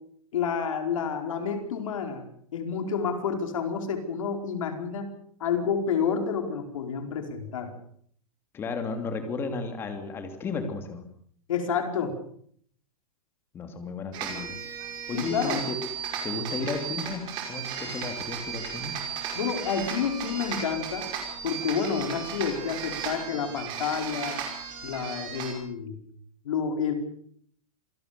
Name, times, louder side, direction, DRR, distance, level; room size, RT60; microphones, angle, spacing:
voice 1, 0.3-2.3 2.5-7.7 11.5-12.2 15.1-15.6 19.3-21.1 21.4-24.4 24.8-26.0 26.4-26.9, left 6 dB, 60° left, 5 dB, 4.9 m, -29 dB
voice 2, 8.5-11.0 13.5-14.6 15.1-15.8 16.2-18.9, left 4 dB, 10° left, 6 dB, 2.9 m, -33 dB
sound 1, 14.1-25.5, right 7 dB, 25° right, 5.3 m, -35 dB
27.0 x 19.0 x 6.9 m, 0.63 s
supercardioid pair, 175°, 19 cm